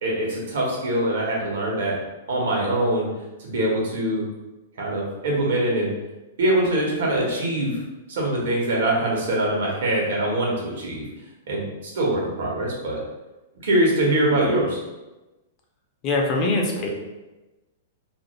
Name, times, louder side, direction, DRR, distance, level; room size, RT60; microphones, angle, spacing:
voice 1, 0.0-2.0 2.3-3.1 3.4-4.3 4.8-5.9 6.4-7.8 8.1-11.1 11.5-13.0 13.6-14.8, right 1 dB, 70° right, -3 dB, 0.9 m, -23 dB
voice 2, 16.0-16.9, left 2 dB, 40° left, 0 dB, 0.6 m, -22 dB
2.5 x 2.0 x 3.1 m, 1.1 s
hypercardioid pair, 120°, 0 cm